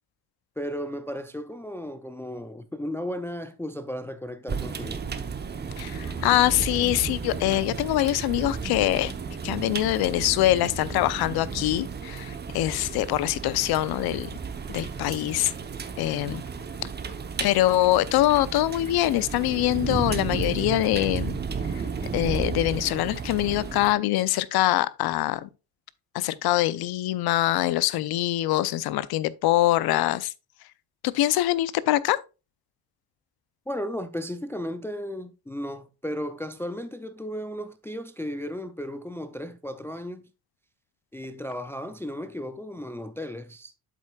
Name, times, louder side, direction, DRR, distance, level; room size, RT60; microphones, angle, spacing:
voice 1, 0.6-5.0 33.7-40.2 41.1-43.7, equal, 5° left, 0.4 m, -35 dB
sound 1, 4.5-23.9, right 5 dB, 25° right, 0.9 m, -33 dB
voice 2, 5.8-9.1 9.4-14.3 14.7-15.5 16.0-16.4 17.4-21.4 21.7-21.8 22.1-25.5 26.1-30.3 31.0-32.2, left 15 dB, 80° left, 0.6 m, -24 dB
8.1 x 7.4 x 2.3 m
cardioid pair, 125°, 37 cm